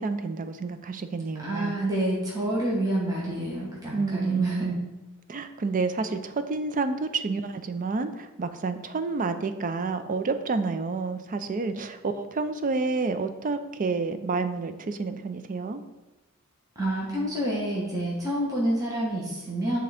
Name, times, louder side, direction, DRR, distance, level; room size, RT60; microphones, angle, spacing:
voice 1, 0.0-1.8 3.9-4.9 5.3-15.8, right 4 dB, 35° right, 9 dB, 0.5 m, -29 dB
voice 2, 1.4-4.6 16.8-19.8, right 1 dB, 15° right, -5 dB, 1.1 m, -28 dB
9.3 x 3.8 x 3.4 m, 1.1 s
head